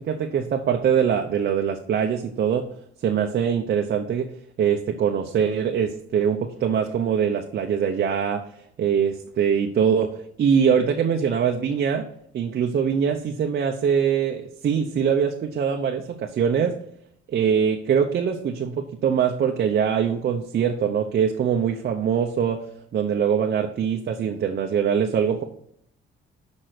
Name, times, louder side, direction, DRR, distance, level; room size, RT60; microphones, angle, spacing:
voice 1, 0.0-2.6 3.0-4.3 4.6-8.4 8.8-10.1 10.4-12.0 12.3-16.8 17.3-22.6 22.9-25.4, right 7 dB, 55° right, 4 dB, 0.8 m, -23 dB
6.6 x 5.3 x 5.9 m, 0.70 s
cardioid pair, 90°, 20 cm